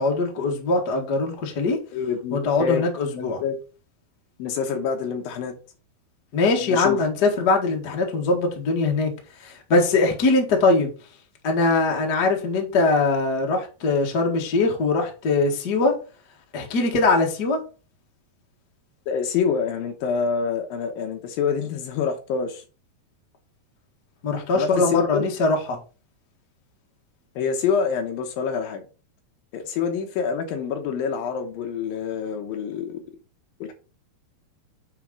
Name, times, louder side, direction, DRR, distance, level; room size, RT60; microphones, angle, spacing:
voice 1, 0.0-1.8 2.3-3.4 6.3-9.1 9.4-10.9 11.4-16.0 16.5-17.6 24.2-25.8, left 3 dB, 55° left, 1.1 m, -22 dB
voice 2, 1.9-2.8 3.1-3.6 4.4-5.5 6.6-7.1 19.1-22.6 24.5-25.2 27.4-28.8 29.5-33.0 33.6-33.7, left 6 dB, 75° left, 2.5 m, -26 dB
9.3 x 4.1 x 3.8 m
omnidirectional pair, 4.6 m